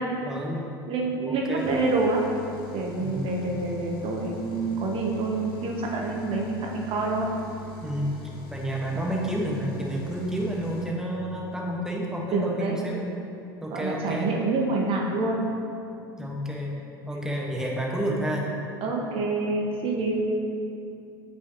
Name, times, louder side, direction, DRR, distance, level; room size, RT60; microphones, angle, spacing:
voice 1, 0.2-0.7 1.3-1.7 3.0-3.3 7.8-8.1 8.5-13.0 13.6-14.3 16.2-16.7 17.1-18.5, right 1 dB, 5° right, -2 dB, 1.2 m, -30 dB
voice 2, 0.9-2.2 2.7-7.3 8.9-9.1 12.3-12.8 13.7-15.5 18.8-20.3, right 3 dB, 45° right, 0 dB, 0.8 m, -27 dB
sound 1, 1.5-10.9, left 5 dB, 70° left, 1.4 m, -43 dB
8.0 x 5.6 x 2.8 m, 2.6 s
hypercardioid pair, 70°, 12 cm